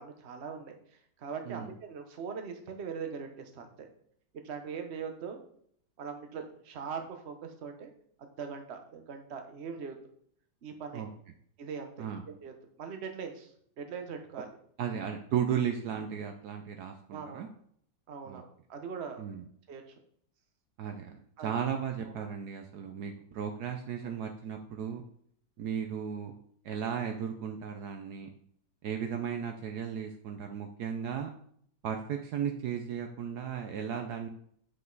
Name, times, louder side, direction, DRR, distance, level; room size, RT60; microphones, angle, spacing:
voice 1, 0.0-3.9 4.4-5.4 6.0-7.9 8.2-10.0 10.6-11.0 11.6-13.5 13.8-14.6 17.1-17.5 18.1-19.2 19.7-19.8 21.4-21.5 22.0-22.3 24.0-24.1 33.7-33.8, right 6 dB, 45° right, 5 dB, 1.1 m, -41 dB
voice 2, 14.8-17.5 18.2-18.4 19.2-19.4 20.8-25.0 25.6-26.4 26.6-28.3 28.8-31.3 31.8-34.3, right 8 dB, 70° right, 5 dB, 1.1 m, -35 dB
8.0 x 5.3 x 3.9 m, 0.64 s
omnidirectional pair, 1.9 m